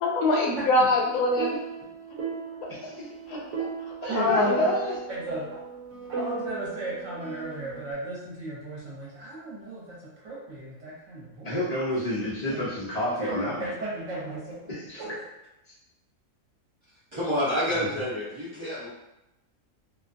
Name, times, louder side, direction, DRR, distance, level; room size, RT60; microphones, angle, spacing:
voice 1, 0.0-1.5 3.3-3.4 4.2-4.5, left 2 dB, 75° left, -1 dB, 1.0 m, -23 dB
sound 1, 1.0-7.9, right 5 dB, 90° right, 1.2 m, -37 dB
voice 2, 2.7-3.1 4.0-5.0 11.4-13.7 14.7-15.0 15.7-15.8 17.8-18.0, equal, 45° left, -8 dB, 0.5 m, -29 dB
voice 3, 4.1-4.7 5.1-5.5 6.1-11.5 12.5-12.7 13.2-14.7 15.0-15.1, right 2 dB, 55° right, -7 dB, 1.2 m, -35 dB
voice 4, 17.1-18.9, equal, 30° right, -10 dB, 0.5 m, -28 dB
2.7 x 2.2 x 2.5 m, 0.93 s
omnidirectional pair, 1.6 m